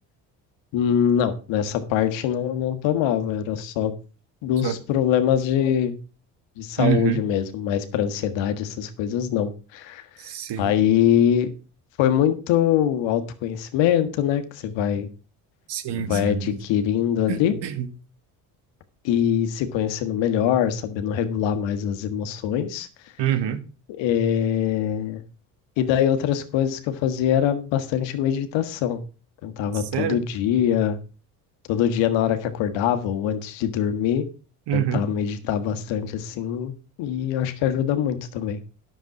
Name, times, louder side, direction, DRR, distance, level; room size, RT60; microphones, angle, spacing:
voice 1, 0.7-3.9 4.4-5.9 6.6-10.0 10.6-11.5 12.0-15.1 16.0-17.6 19.0-22.9 23.9-25.2 25.8-29.0 29.4-31.0 31.7-34.2 34.7-36.7 37.0-38.6, left 9 dB, 75° left, 1.6 m, -23 dB
voice 2, 6.8-7.2 10.2-10.7 15.7-16.6 17.3-17.9 23.2-23.6 29.7-30.2 34.7-35.0, right 10 dB, 65° right, 1.7 m, -26 dB
10.0 x 7.1 x 6.0 m
supercardioid pair, 65°, 45 cm